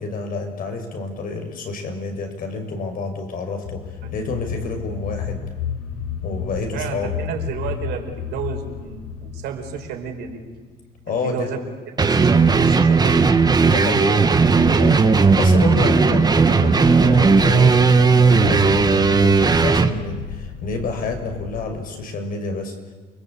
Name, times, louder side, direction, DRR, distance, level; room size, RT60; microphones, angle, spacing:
voice 1, 0.0-3.8 4.1-5.4 6.2-7.1 11.1-11.5 13.6-14.3 14.6-22.8, left 3 dB, 55° left, 5 dB, 6.3 m, -29 dB
sound 1, 3.6-11.4 15.1-21.7, left 7 dB, 90° left, 4.2 m, -33 dB
voice 2, 6.7-10.4 11.1-11.6 12.0-13.3, right 7 dB, 80° right, 3 dB, 5.6 m, -31 dB
sound 2, 12.0-19.9, right 4 dB, 25° right, 1.7 m, -15 dB
29.5 x 21.5 x 8.7 m, 1.4 s
cardioid pair, 110°, 17 cm